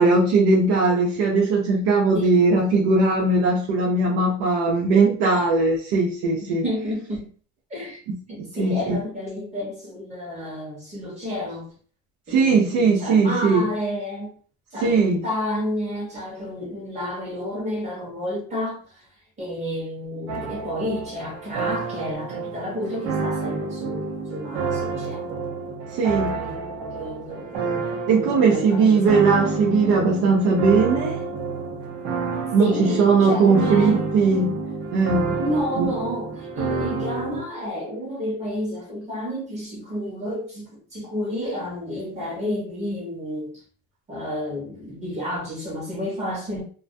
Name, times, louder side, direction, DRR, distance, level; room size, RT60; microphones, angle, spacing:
voice 1, 0.0-6.6 8.1-9.0 12.3-13.7 14.8-15.3 25.9-26.4 28.1-31.2 32.5-34.6 34.9-35.4 35.8-35.9, right 3 dB, 90° right, 0.7 m, -19 dB
voice 2, 6.4-7.3 7.7-8.0 8.3-11.7 12.3-14.3 14.7-19.0 19.4-25.4 26.1-29.2 32.6-34.0 35.4-43.6 44.1-46.6, equal, 20° right, 0.7 m, -30 dB
sound 1, 20.3-37.4, right 4 dB, 50° right, 0.7 m, -29 dB
2.2 x 2.2 x 2.5 m
cardioid pair, 160°, 33 cm